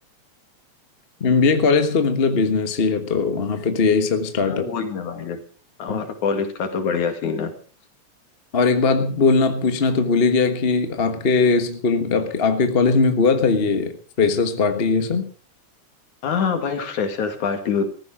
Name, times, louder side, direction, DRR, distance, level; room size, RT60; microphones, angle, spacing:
voice 1, 1.2-4.6 5.9-6.0 8.5-15.3, left 4 dB, 40° left, 8 dB, 0.8 m, -20 dB
voice 2, 4.4-5.4 5.8-7.5 16.2-17.9, left 6 dB, 85° left, 6 dB, 3.7 m, -25 dB
15.0 x 14.5 x 5.0 m, 0.40 s
omnidirectional pair, 3.3 m